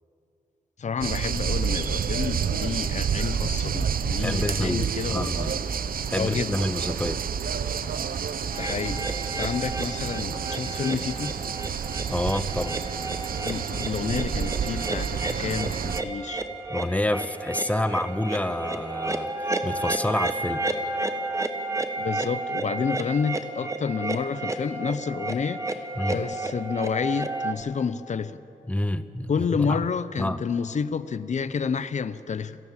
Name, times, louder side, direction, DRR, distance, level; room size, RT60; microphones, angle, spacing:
voice 1, 0.8-5.6 6.2-6.5 8.6-11.4 13.4-16.4 22.0-28.4 29.3-32.6, left 6 dB, 50° left, 15 dB, 0.7 m, -29 dB
sound 1, 1.0-16.0, right 7 dB, 75° right, 0.8 m, -29 dB
voice 2, 4.2-5.5 6.1-7.2 12.1-12.8 16.7-20.7 26.0-26.2 28.7-29.8 30.2-30.4, left 1 dB, 10° left, 13 dB, 0.7 m, -28 dB
sound 2, 8.5-27.5, right 2 dB, 20° right, 1.2 m, -32 dB
26.5 x 17.0 x 7.4 m, 2.9 s
wide cardioid pair, 155°, 15 cm